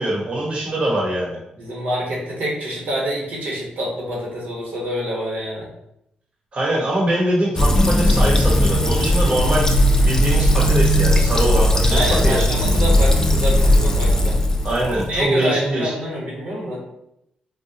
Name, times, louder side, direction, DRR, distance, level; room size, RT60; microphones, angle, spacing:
voice 1, 0.0-1.4 6.5-9.7 10.0-12.4 14.6-15.9, right 1 dB, 45° right, -4 dB, 0.9 m, -23 dB
voice 2, 1.6-5.7 11.9-14.4 14.9-16.8, equal, 80° right, -3 dB, 1.1 m, -26 dB
Fill (with liquid), 7.6-15.2, left 1 dB, 20° left, 0.4 m, -17 dB
3.9 x 2.1 x 2.8 m, 0.79 s
cardioid pair, 80°, 3 cm